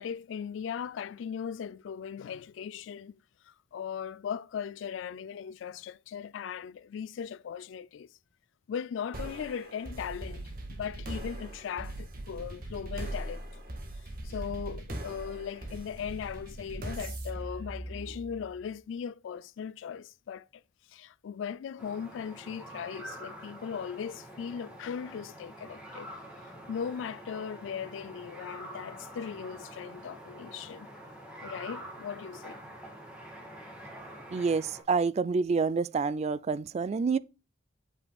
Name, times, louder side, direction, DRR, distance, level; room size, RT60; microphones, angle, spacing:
voice 1, 0.0-3.1 3.7-8.1 8.7-13.4 14.2-20.5 20.9-26.1 26.7-30.9 31.4-32.6, left 7 dB, 80° left, 0.3 m, -38 dB
sound 1, 9.1-18.6, right 1 dB, 50° right, 1.6 m, -40 dB
sound 2, 21.8-34.8, right 1 dB, 5° right, 2.0 m, -46 dB
voice 2, 34.3-37.2, right 4 dB, 35° right, 0.3 m, -28 dB
8.2 x 5.3 x 2.3 m
head